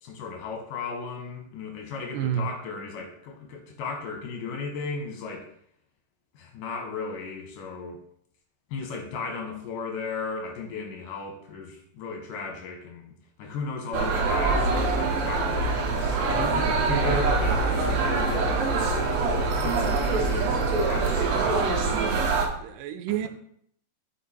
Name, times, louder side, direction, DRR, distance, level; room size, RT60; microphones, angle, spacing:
voice 1, 0.0-5.5 6.3-8.0 8.7-13.1 13.4-18.5 19.2-22.6 23.1-23.3, left 4 dB, 75° left, 2 dB, 3.0 m, -36 dB
voice 2, 2.1-2.5 17.1-17.3 22.6-23.3, right 10 dB, 85° right, 9 dB, 2.2 m, -29 dB
sound 1, 13.9-22.5, right 3 dB, 65° right, 1.9 m, -24 dB
6.4 x 4.9 x 4.5 m, 0.66 s
omnidirectional pair, 3.9 m